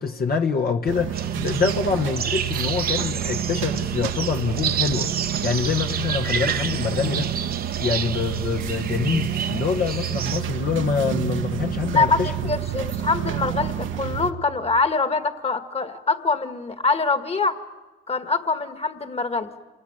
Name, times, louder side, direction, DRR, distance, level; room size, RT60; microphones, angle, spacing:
voice 1, 0.0-5.1 5.4-7.3 7.8-12.3, left 5 dB, 50° left, 1.2 m, -25 dB
sound 1, 0.9-14.3, right 10 dB, 80° right, 1.2 m, -29 dB
sound 2, 1.1-10.4, right 7 dB, 50° right, 1.1 m, -30 dB
voice 2, 12.0-17.6 18.1-19.5, left 4 dB, 30° left, 1.8 m, -24 dB
27.5 x 20.0 x 8.9 m
cardioid pair, 90°, 20 cm